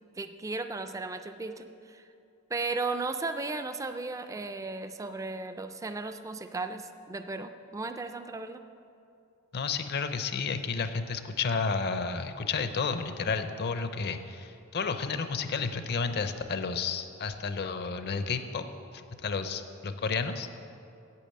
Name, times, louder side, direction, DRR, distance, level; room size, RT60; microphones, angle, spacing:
voice 1, 0.2-2.0 2.5-8.6, right 3 dB, 15° right, 9 dB, 0.3 m, -35 dB
voice 2, 9.5-18.6 18.9-20.5, left 5 dB, 45° left, 9 dB, 0.6 m, -31 dB
8.6 x 8.5 x 7.6 m, 2.6 s
head